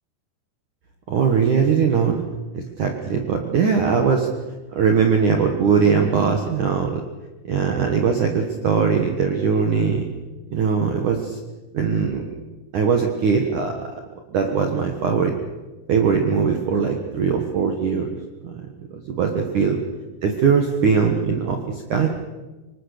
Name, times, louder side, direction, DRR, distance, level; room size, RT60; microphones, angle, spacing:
voice 1, 1.1-2.2 2.5-4.3 4.7-7.0 7.5-10.0 10.5-11.4 11.7-12.2 12.7-13.7 14.3-15.3 15.9-18.1 19.1-19.8 20.2-22.1, right 6 dB, 70° right, 4 dB, 1.9 m, -20 dB
25.5 x 21.5 x 6.8 m, 1.2 s
omnidirectional pair, 6.0 m